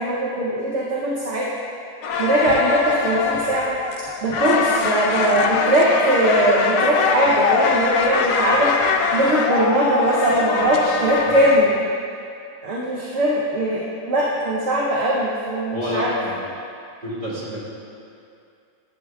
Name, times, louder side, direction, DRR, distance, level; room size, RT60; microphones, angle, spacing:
voice 1, 0.0-1.5 2.2-3.8 4.2-8.7 9.1-11.8 12.6-16.1, right 1 dB, 55° right, -6 dB, 1.0 m, -20 dB
sound 1, 2.0-11.6, left 5 dB, 70° left, 0.8 m, -22 dB
voice 2, 15.7-16.4 17.0-17.6, left 1 dB, 30° right, -8 dB, 2.1 m, -28 dB
11.0 x 7.8 x 2.3 m, 2.5 s
omnidirectional pair, 1.8 m